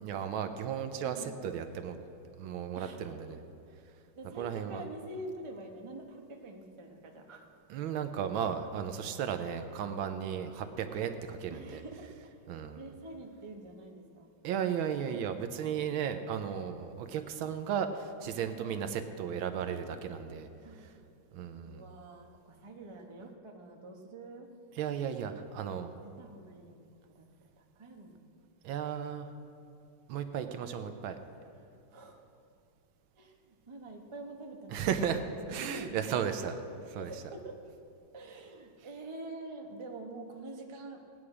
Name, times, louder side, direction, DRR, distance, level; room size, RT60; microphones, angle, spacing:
voice 1, 0.0-2.0 2.4-3.4 4.4-4.8 7.7-11.8 12.5-12.9 14.4-20.5 21.3-21.8 24.8-25.9 28.6-29.3 30.1-31.2 34.7-36.6 36.9-37.2, right 8 dB, 75° right, 8 dB, 1.4 m, -35 dB
voice 2, 4.2-7.4 11.5-12.4 12.7-14.3 18.6-18.8 20.6-21.1 21.6-24.5 25.8-26.9 27.1-28.4 31.9-32.2 33.1-34.9 35.5-35.9 37.0-37.5 38.1-41.0, right 2 dB, 30° right, 1 dB, 0.5 m, -46 dB
18.0 x 9.6 x 4.9 m, 2.5 s
omnidirectional pair, 2.4 m